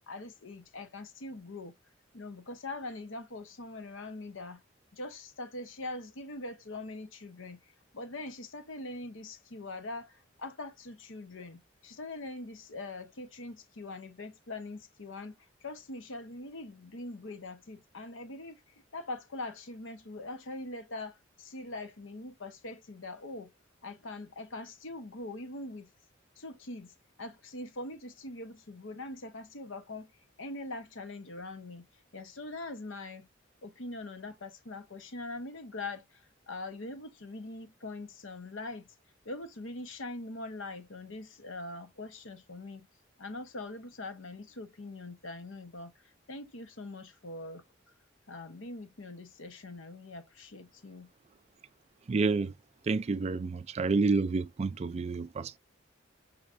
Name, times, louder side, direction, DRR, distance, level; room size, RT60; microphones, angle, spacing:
voice 1, 0.1-1.7 2.1-4.6 4.9-7.6 7.9-23.5 23.8-25.9 26.4-30.1 30.4-31.8 32.1-33.3 33.6-38.9 39.2-42.9 43.2-47.6 48.3-51.1, left 2 dB, 85° left, 1.0 m, -42 dB
voice 2, 52.1-52.5 52.9-55.6, right 4 dB, 35° right, 0.3 m, -29 dB
6.2 x 3.0 x 2.5 m
head